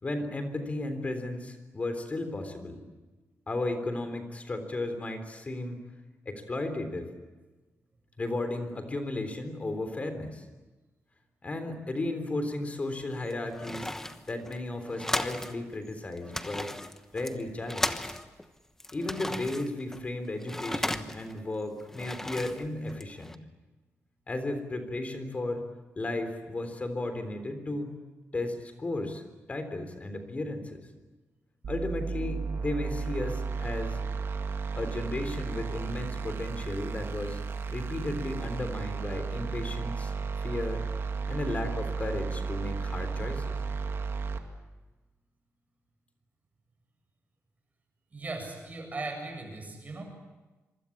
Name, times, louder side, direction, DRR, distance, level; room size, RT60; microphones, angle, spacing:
voice 1, 0.0-2.8 3.5-5.8 6.3-7.1 8.2-10.5 11.4-13.9 14.3-16.7 17.1-18.0 18.9-23.3 24.3-25.6 26.0-27.9 28.3-29.2 29.5-30.8 31.7-34.0 34.8-37.4 37.7-40.1 40.4-40.8 41.3-43.6, left 2 dB, 25° left, 8 dB, 3.7 m, -34 dB
sound 1, 13.0-15.6 15.9-16.0 16.2-18.5 18.8-21.4 21.8-23.4, left 1 dB, 10° left, 1.1 m, -35 dB
sound 2, 31.6-44.4, right 5 dB, 55° right, 2.2 m, -34 dB
voice 2, 48.1-50.0, right 3 dB, 30° right, 3 dB, 7.7 m, -38 dB
26.0 x 24.5 x 8.6 m, 1.2 s
wide cardioid pair, 160°, 5 cm